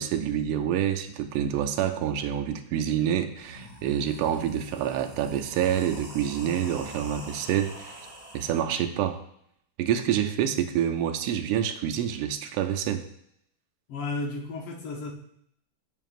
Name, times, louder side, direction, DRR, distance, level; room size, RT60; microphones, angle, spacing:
voice 1, 0.0-8.0 8.3-9.2 9.8-13.0, right 10 dB, 90° right, 6 dB, 1.5 m, -27 dB
sound 1, 2.9-3.0 3.3-8.6, right 1 dB, 50° right, 0.4 m, -44 dB
voice 2, 13.9-15.1, left 3 dB, 80° left, 1 dB, 1.9 m, -33 dB
9.0 x 5.7 x 2.5 m, 0.72 s
omnidirectional pair, 2.4 m